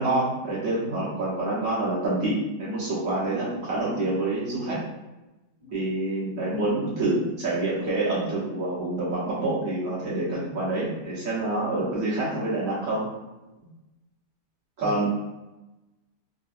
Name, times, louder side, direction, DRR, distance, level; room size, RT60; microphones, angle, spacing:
voice 1, 0.0-4.8 5.7-13.1 14.8-15.1, right 2 dB, 55° right, -7 dB, 1.4 m, -27 dB
voice 2, 3.2-3.5 5.6-5.7 14.8-15.1, equal, 25° right, -6 dB, 0.9 m, -41 dB
3.9 x 2.3 x 2.4 m, 1.0 s
omnidirectional pair, 1.8 m